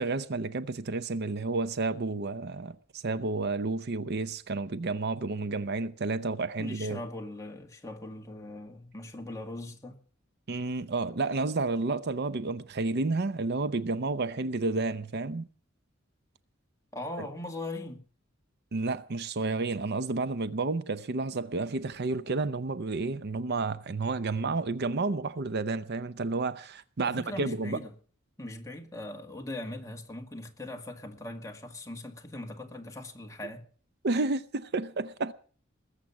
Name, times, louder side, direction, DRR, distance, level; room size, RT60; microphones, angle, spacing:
voice 1, 0.0-7.0 10.5-15.5 17.2-17.3 18.7-27.8 34.0-35.3, right 3 dB, 55° right, 0.6 m, -31 dB
voice 2, 6.6-10.0 16.9-18.0 27.0-27.9 28.4-33.6, left 1 dB, 15° left, 2.0 m, -40 dB
20.5 x 7.4 x 7.2 m
head